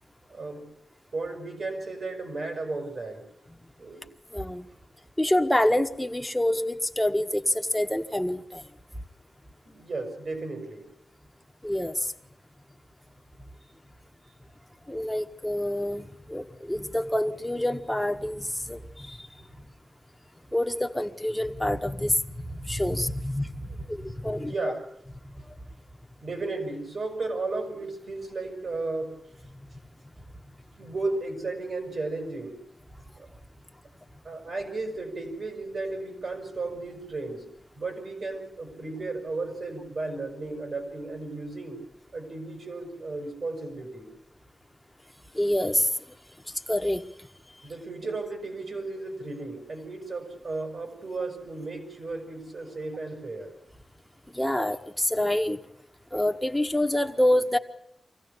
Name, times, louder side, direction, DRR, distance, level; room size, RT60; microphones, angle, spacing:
voice 1, 0.3-0.7 1.1-3.2 3.8-4.0 9.6-10.9 23.7-23.9 24.2-24.8 26.2-29.1 30.8-32.6 33.2-33.3 34.2-37.4 37.7-41.8 42.1-44.1 47.6-53.5, right 3 dB, 60° right, 4 dB, 6.4 m, -34 dB
voice 2, 4.3-4.7 5.2-8.6 11.6-12.1 14.9-19.3 20.5-23.5 23.9-24.5 45.3-45.9 46.7-47.0 54.3-55.6 56.1-57.6, left 1 dB, 5° left, 5 dB, 1.4 m, -27 dB
24.5 x 16.0 x 8.5 m, 0.78 s
wide cardioid pair, 90°, 0 cm